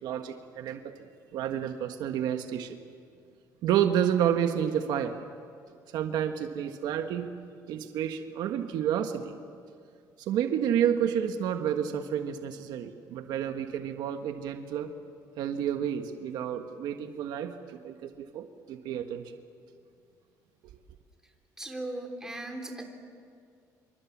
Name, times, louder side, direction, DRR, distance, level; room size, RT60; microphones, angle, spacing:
voice 1, 0.0-0.9 1.3-2.8 3.6-5.2 5.9-7.3 7.7-9.3 10.2-14.9 15.4-19.2, right 9 dB, 75° right, 6 dB, 1.5 m, -30 dB
voice 2, 21.6-22.8, right 2 dB, 5° right, 2 dB, 3.5 m, -37 dB
26.5 x 25.0 x 7.4 m, 2.2 s
cardioid pair, 130°, 7 cm